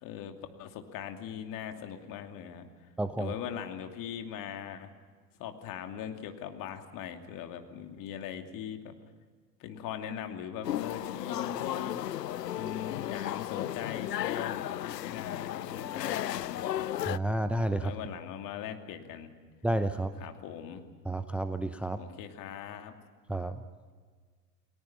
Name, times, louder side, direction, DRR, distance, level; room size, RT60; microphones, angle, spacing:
voice 1, 0.0-2.7 3.2-4.9 5.4-9.0 9.6-12.0 12.5-16.9 17.8-19.3 20.2-20.9 22.0-22.9, left 9 dB, 40° left, 5 dB, 2.7 m, -40 dB
voice 2, 3.0-3.3 17.1-17.9 19.6-20.1 21.1-22.0 23.3-23.6, right 1 dB, 5° right, 10 dB, 0.7 m, -30 dB
sound 1, 10.6-17.2, left 12 dB, 75° left, 0.7 m, -34 dB
29.5 x 20.5 x 5.8 m, 1.5 s
figure-of-eight pair, 85°, 49 cm